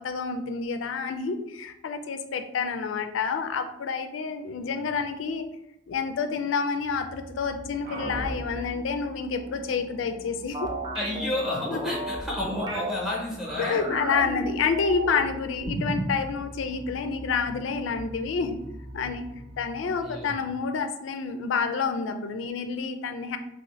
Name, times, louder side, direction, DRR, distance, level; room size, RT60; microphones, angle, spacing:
voice 1, 0.0-5.5 5.9-10.7 11.7-11.9 13.6-18.6 18.9-19.3 19.6-23.4, left 5 dB, 90° left, 7 dB, 0.4 m, -29 dB
sound 1, 7.8-20.7, equal, 50° right, 0.8 m, -42 dB
sound 2, 10.5-12.9 13.4-15.3 15.6-16.2, right 2 dB, 20° right, 0.3 m, -33 dB
voice 2, 10.9-13.8 20.0-20.4, left 1 dB, ahead, -3 dB, 0.7 m, -31 dB
2.8 x 2.7 x 3.0 m, 0.85 s
head